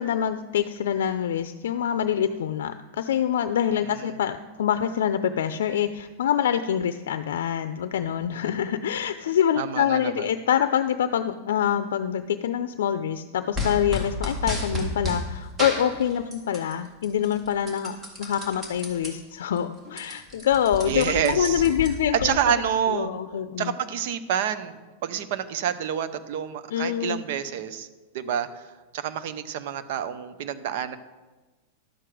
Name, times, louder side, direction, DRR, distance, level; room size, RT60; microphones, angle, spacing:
voice 1, 0.0-22.4 22.9-23.7 26.7-27.2, left 9 dB, 85° left, 11 dB, 0.5 m, -25 dB
voice 2, 9.5-10.3 20.9-21.6 22.1-23.1 23.6-27.9 28.1-31.0, right 9 dB, 55° right, 12 dB, 0.8 m, -28 dB
sound 1, 13.5-15.2 15.6-16.7 17.0-19.1 19.5-19.6 19.8-22.3, left 2 dB, 10° right, 1.9 m, -31 dB
12.0 x 7.8 x 4.9 m, 1.2 s
supercardioid pair, 165°, 0 cm